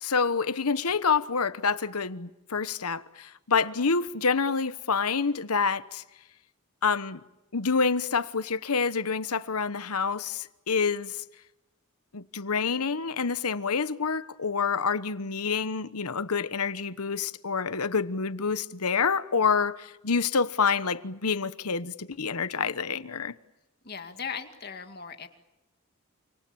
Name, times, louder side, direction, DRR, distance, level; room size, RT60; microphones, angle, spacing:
voice 1, 0.0-6.0 6.8-7.2 7.5-11.2 12.1-23.4, left 5 dB, 85° left, 1.1 m, -27 dB
voice 2, 23.8-25.3, left 6 dB, 45° left, 2.3 m, -38 dB
29.0 x 26.5 x 7.1 m
head